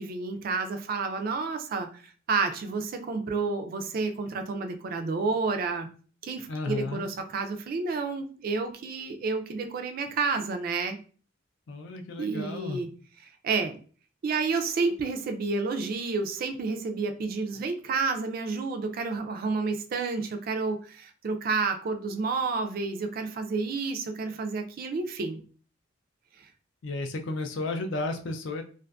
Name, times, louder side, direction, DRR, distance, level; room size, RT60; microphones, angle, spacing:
voice 1, 0.0-2.0 2.3-5.9 6.2-11.0 12.2-12.9 13.4-13.8 14.2-25.4, right 4 dB, 50° right, 6 dB, 0.3 m, -30 dB
voice 2, 6.5-7.0 11.7-12.8 26.8-28.6, left 2 dB, 65° left, 6 dB, 0.4 m, -33 dB
2.5 x 2.4 x 2.2 m, 0.40 s
head